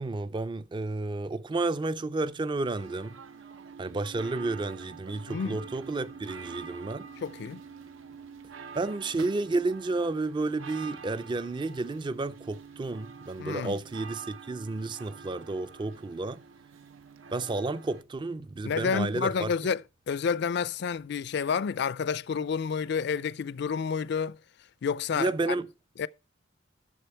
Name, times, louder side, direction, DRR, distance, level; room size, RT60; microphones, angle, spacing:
voice 1, 0.0-3.2 3.8-7.1 8.7-16.4 17.3-19.5 25.2-25.7, right 3 dB, 25° right, 0.4 m, -31 dB
sound 1, 2.8-18.0, right 6 dB, 85° right, 0.6 m, -47 dB
voice 2, 5.3-5.6 7.2-7.6 13.4-13.8 18.6-24.4 24.8-25.5 26.0-26.1, left 6 dB, 60° left, 0.4 m, -30 dB
Harp, 5.6-23.1, equal, 55° right, 3.8 m, -63 dB
10.0 x 6.9 x 4.4 m
head